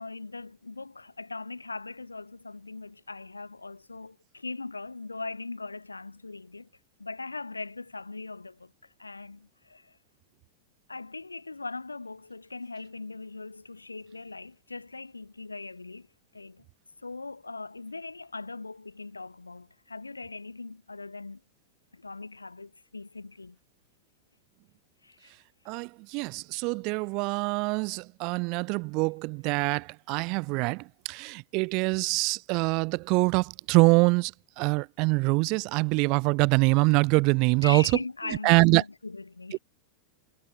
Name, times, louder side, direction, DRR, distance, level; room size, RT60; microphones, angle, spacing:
voice 1, 0.0-6.7 7.0-10.0 10.9-16.1 16.3-16.6 17.0-21.4 21.9-23.6 25.0-25.3 29.6-29.7 37.6-39.6, left 3 dB, 80° left, 5.0 m, -40 dB
voice 2, 25.7-34.3 34.6-37.8 38.4-38.8 39.5-39.6, right 29 dB, 45° right, 0.4 m, -24 dB
figure-of-eight pair, 90°, 0 cm